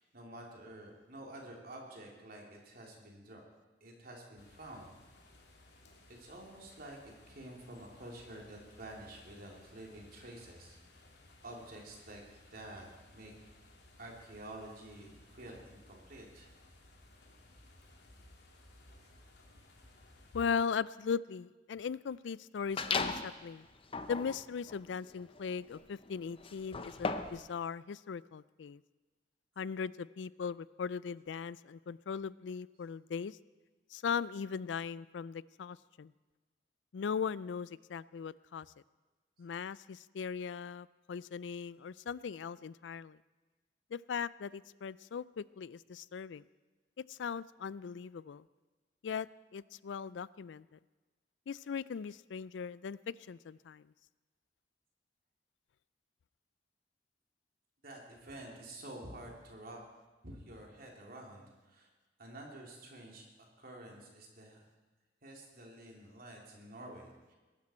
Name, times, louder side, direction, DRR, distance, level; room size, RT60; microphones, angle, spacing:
voice 1, 0.0-3.4 3.8-4.9 6.1-7.0 7.3-10.8 11.4-12.2 12.5-13.3 14.0-16.5 57.8-59.8 60.2-61.9 62.2-63.2 63.6-64.6 65.2-67.3, right 1 dB, 55° right, 0 dB, 3.0 m, -49 dB
sound 1, 4.4-20.6, left 1 dB, 65° left, 2.5 m, -60 dB
voice 2, 20.3-23.7 24.1-28.8 29.6-33.4 33.9-36.1 36.9-38.7 39.4-43.2 43.9-46.4 47.1-48.4 49.0-49.3 49.5-50.6 51.5-53.0 53.3-53.9, left 6 dB, 90° left, 20 dB, 0.4 m, -39 dB
sound 2, 22.8-23.4 23.8-27.5, left 4 dB, 30° left, 0.7 m, -37 dB
21.0 x 12.0 x 4.4 m, 1.3 s
head